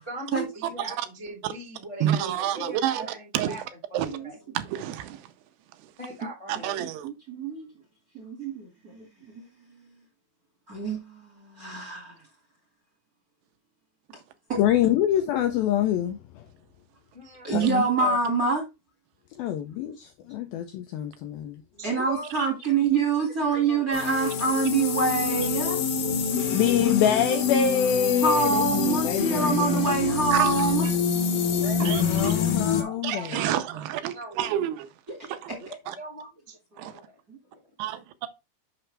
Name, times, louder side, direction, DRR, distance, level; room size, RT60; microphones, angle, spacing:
voice 1, 0.0-3.6 3.9-4.4 6.0-6.9 17.1-17.5 21.8-22.3 23.5-23.9 31.6-32.4 32.8-33.8 34.1-34.6 35.6-36.3, right 1 dB, 30° left, 0.5 m, -40 dB
voice 2, 0.6-1.1 2.0-3.6 3.9-4.1 4.5-5.3 5.8-5.9 6.5-7.1 17.6-17.7 30.3-30.9 31.8-32.5 33.0-34.9 35.3-35.5 35.9-36.0 37.8-38.3, right 11 dB, 80° right, 2.8 m, -29 dB
voice 3, 6.8-7.7 8.1-9.0 10.7-12.1 14.5-14.6 17.4-18.6 21.8-25.8 28.2-30.9, right 4 dB, 40° right, 1.3 m, -26 dB
voice 4, 14.6-16.4 17.5-18.2 19.4-21.6 26.5-29.8 31.8-33.4, left 9 dB, 80° left, 2.1 m, -26 dB
sound 1, 23.9-32.8, left 6 dB, 65° left, 2.6 m, -26 dB
6.8 x 6.0 x 3.3 m
omnidirectional pair, 4.8 m